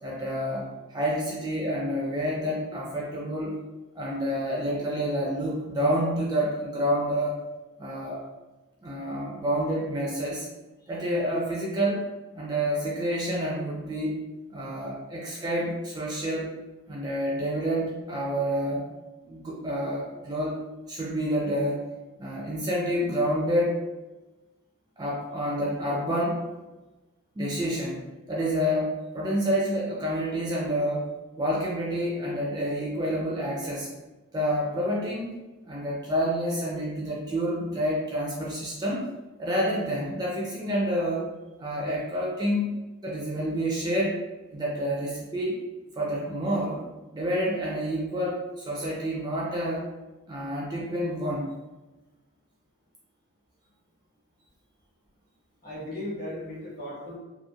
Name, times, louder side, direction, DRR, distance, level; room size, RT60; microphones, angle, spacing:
voice 1, 0.0-3.6 3.9-7.4 7.8-8.2 8.8-10.5 10.9-12.1 12.3-14.2 14.5-16.5 16.9-18.9 19.2-20.6 20.9-21.9 22.2-23.8 25.0-26.4 27.4-33.9 34.3-35.3 35.6-39.1 39.4-41.3 41.6-42.7 43.0-44.2 44.5-45.6 46.0-46.8 47.1-49.9 50.3-51.5, equal, 20° right, -4 dB, 0.4 m, -28 dB
voice 2, 55.6-57.1, left 1 dB, 45° left, -7 dB, 1.3 m, -36 dB
3.0 x 2.4 x 2.3 m, 1.1 s
head